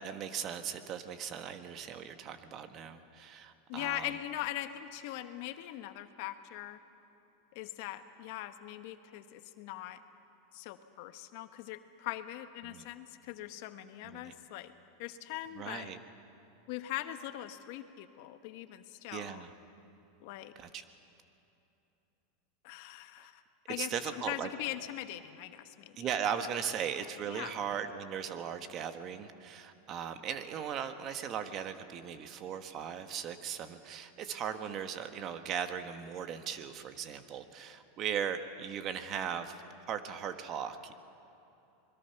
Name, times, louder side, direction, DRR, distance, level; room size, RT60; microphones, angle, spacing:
voice 1, 0.0-4.1 12.6-12.8 14.0-14.3 15.5-16.0 19.1-19.5 20.6-20.8 23.8-24.5 26.0-39.6 39.9-40.9, right 8 dB, 40° right, 9 dB, 1.3 m, -38 dB
voice 2, 3.7-6.8 7.5-10.0 10.5-14.7 15.0-16.0 16.7-19.4 20.2-20.5 22.6-23.4 23.7-26.1 26.4-26.5 27.3-27.6, left 14 dB, 65° left, 9 dB, 1.1 m, -41 dB
25.0 x 21.5 x 5.9 m, 2.8 s
supercardioid pair, 125°, 0 cm